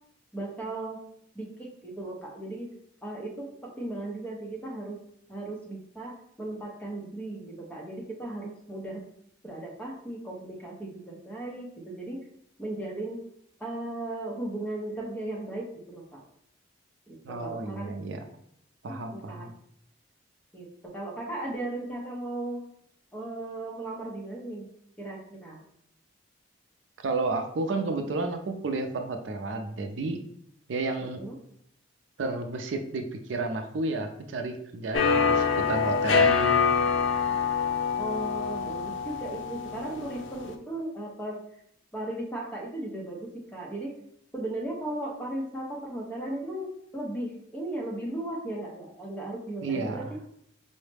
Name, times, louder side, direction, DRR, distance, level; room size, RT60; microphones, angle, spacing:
voice 1, 0.3-1.0 1.3-2.7 3.0-5.0 5.3-9.0 9.4-12.2 12.6-13.2 13.6-16.2 17.1-17.9 18.9-19.5 20.5-20.7 20.9-22.6 23.1-24.7 25.0-25.6 31.1-31.3 38.0-41.4 41.9-44.0 44.3-50.2, right 1 dB, 10° left, -2 dB, 0.8 m, -36 dB
voice 2, 17.2-18.2 18.8-19.5 27.0-30.2 30.7-31.2 32.2-36.7 49.6-50.1, right 3 dB, 80° right, 5 dB, 0.4 m, -31 dB
sound 1, 34.9-40.6, left 5 dB, 90° left, 0.4 m, -25 dB
4.6 x 2.1 x 3.3 m, 0.70 s
head